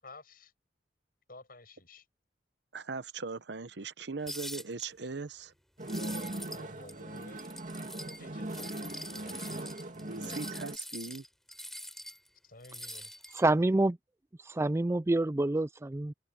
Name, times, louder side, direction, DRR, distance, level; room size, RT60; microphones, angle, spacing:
voice 1, 0.0-0.5 1.3-2.1 5.9-7.4 8.2-10.4 12.4-13.1, left 2 dB, 55° left, 7.8 m, -53 dB
voice 2, 2.7-5.5 10.2-11.2, right 4 dB, 70° right, 0.9 m, -39 dB
sound 1, 4.3-4.9 5.8-6.6 6.9-8.2 8.5-12.3 12.6-13.5, left 1 dB, ahead, 4.9 m, -44 dB
sound 2, 5.8-10.8, right 1 dB, 45° right, 2.6 m, -39 dB
voice 3, 13.4-14.0 14.5-16.1, right 2 dB, 15° right, 0.4 m, -27 dB
head